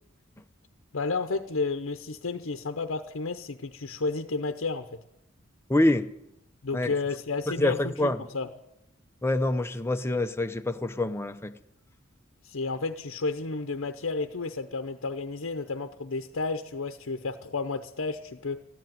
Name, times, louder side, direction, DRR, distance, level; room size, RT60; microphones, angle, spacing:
voice 1, 0.9-4.9 6.6-8.5 12.4-18.7, left 3 dB, 70° left, 0.8 m, -32 dB
voice 2, 5.7-6.1 6.7-6.9 7.6-8.2 9.2-11.5, left 1 dB, 10° left, 0.7 m, -26 dB
14.5 x 10.5 x 9.2 m
head